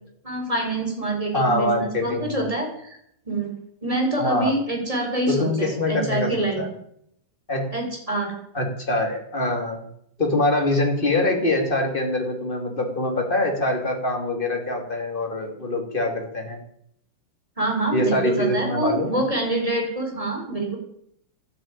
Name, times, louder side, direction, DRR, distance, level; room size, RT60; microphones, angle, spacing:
voice 1, 0.2-3.0 3.2-3.5 3.8-6.7 7.7-8.3 17.6-20.8, right 1 dB, 15° right, 1 dB, 4.5 m, -26 dB
voice 2, 1.3-2.4 4.2-4.5 5.3-6.7 7.5-7.7 8.5-9.9 10.2-16.6 17.9-19.2, left 1 dB, 25° left, 3 dB, 2.9 m, -24 dB
13.0 x 11.0 x 9.0 m, 0.72 s
omnidirectional pair, 2.4 m